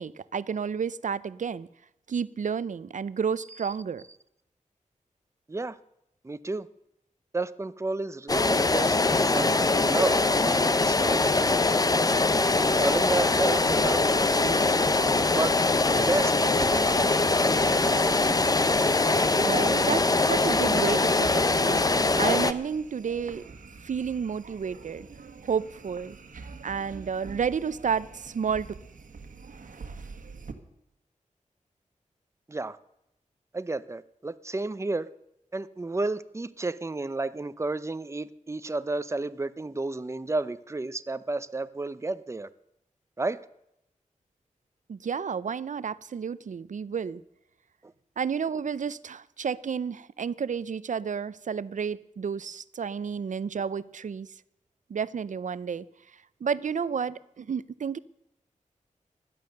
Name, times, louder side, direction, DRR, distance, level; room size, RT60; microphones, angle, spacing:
voice 1, 0.0-1.7 2.1-4.0 19.4-23.4 23.8-25.1 25.4-26.2 26.6-28.7 44.9-47.2 48.2-54.3 54.9-55.8 56.4-58.0, right 6 dB, 70° right, 17 dB, 0.6 m, -31 dB
voice 2, 6.2-6.7 7.3-9.5 9.8-10.2 10.4-11.9 12.3-12.4 12.7-14.8 15.3-15.7 16.0-17.7 32.5-32.8 33.5-35.1 35.5-42.5 43.2-43.4 47.8-47.9, right 2 dB, 20° right, 14 dB, 0.6 m, -32 dB
sound 1, 8.3-22.5, left 3 dB, 30° left, 0.7 m, -23 dB
sound 2, 12.9-30.5, right 4 dB, 90° right, 1.5 m, -44 dB
16.5 x 11.0 x 6.6 m, 0.81 s
wide cardioid pair, 105°, 13 cm